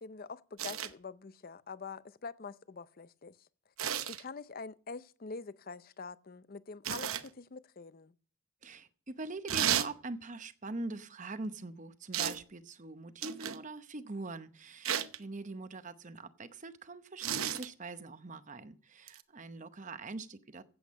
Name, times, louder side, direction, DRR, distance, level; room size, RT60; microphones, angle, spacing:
voice 1, 0.0-3.5 4.1-8.1, left 4 dB, 40° left, 0.5 m, -45 dB
sound 1, 0.6-0.9 3.8-4.2 6.8-7.3 9.5-9.9 12.1-12.4 13.2-13.6 14.9-15.2 17.2-17.7 19.1-19.2, right 9 dB, 70° right, 0.8 m, -33 dB
voice 2, 8.6-20.6, right 3 dB, 35° right, 0.8 m, -43 dB
15.5 x 8.2 x 5.3 m
head